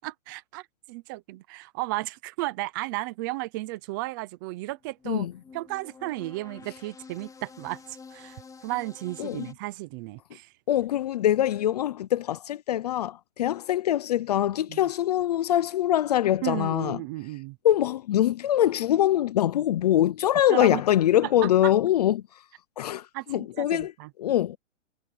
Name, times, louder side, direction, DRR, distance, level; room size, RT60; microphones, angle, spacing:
voice 1, 0.0-5.3 5.5-10.5 14.7-14.8 16.4-17.6 20.5-20.8 21.2-21.7 23.1-24.1, right 20 dB, 15° right, 0.5 m, -34 dB
sound 1, 4.7-9.5, left 5 dB, 10° left, 4.8 m, -49 dB
voice 2, 10.7-17.0 17.6-22.2 22.8-23.9 24.2-24.6, left 12 dB, 35° left, 0.5 m, -23 dB
hypercardioid pair, 155°, 38 cm